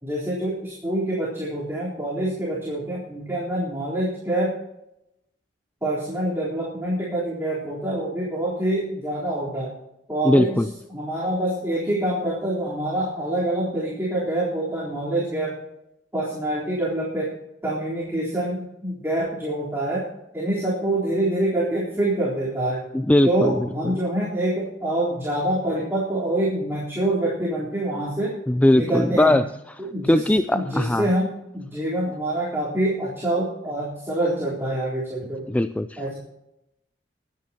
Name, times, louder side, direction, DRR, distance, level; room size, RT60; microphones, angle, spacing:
voice 1, 0.0-4.5 5.8-9.7 10.1-10.6 10.9-15.6 16.1-17.3 17.6-20.1 20.3-22.8 23.2-28.3 28.7-29.4 29.8-35.5 36.0-36.2, right 1 dB, 15° right, 3.8 m, -26 dB
voice 2, 10.2-10.7 22.9-23.6 28.5-29.4 30.1-31.1 35.5-36.2, left 1 dB, 10° left, 0.4 m, -19 dB
23.5 x 9.8 x 2.9 m
head